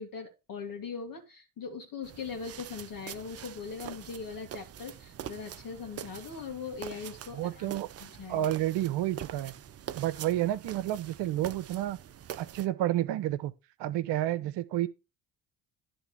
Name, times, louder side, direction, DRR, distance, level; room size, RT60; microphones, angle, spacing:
voice 1, 0.0-7.7 8.0-8.5, left 5 dB, 45° left, 2.0 m, -40 dB
sound 1, 2.0-12.7, right 10 dB, 30° right, 0.6 m, -45 dB
voice 2, 7.4-7.9 8.3-9.5 9.9-12.0 12.4-13.5 13.8-14.9, right 13 dB, 60° right, 1.0 m, -30 dB
10.5 x 3.5 x 6.7 m
hypercardioid pair, 65°, 47 cm